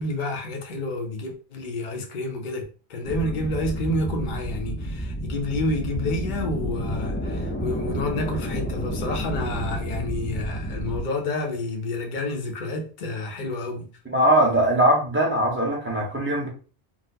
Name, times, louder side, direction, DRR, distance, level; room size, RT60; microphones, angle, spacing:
voice 1, 0.0-2.6 2.9-13.8, left 2 dB, 50° left, 0.8 m, -29 dB
sound 1, 3.0-11.0, equal, 20° left, 0.3 m, -30 dB
voice 2, 14.1-16.5, right 1 dB, 10° right, 0.8 m, -21 dB
3.9 x 2.1 x 2.7 m
omnidirectional pair, 1.1 m